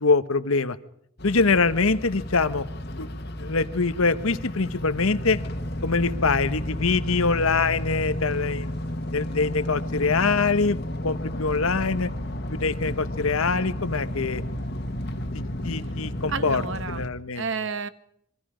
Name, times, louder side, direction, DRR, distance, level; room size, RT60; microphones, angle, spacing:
voice 1, 0.0-0.8 1.2-2.6 3.0-5.4 5.8-8.7 9.1-10.8 11.0-12.1 12.5-14.4 15.3-16.6 16.9-17.4, left 4 dB, 75° left, 13 dB, 1.1 m, -24 dB
sound 1, 1.2-17.1, left 1 dB, 45° left, 1.8 m, -32 dB
voice 2, 16.3-17.0 17.3-17.9, right 5 dB, 60° right, 12 dB, 1.3 m, -30 dB
27.0 x 23.0 x 5.1 m, 0.69 s
head